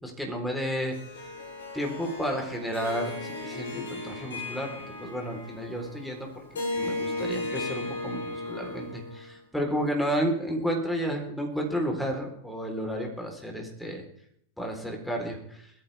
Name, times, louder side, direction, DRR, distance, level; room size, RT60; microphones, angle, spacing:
voice 1, 0.0-1.0 1.7-6.4 6.8-14.0 14.6-15.7, equal, ahead, 1 dB, 4.0 m, -32 dB
Harp, 0.9-9.3, left 2 dB, 65° left, 6.6 m, -36 dB
21.0 x 14.0 x 3.5 m, 0.69 s
figure-of-eight pair, 90°, 0 cm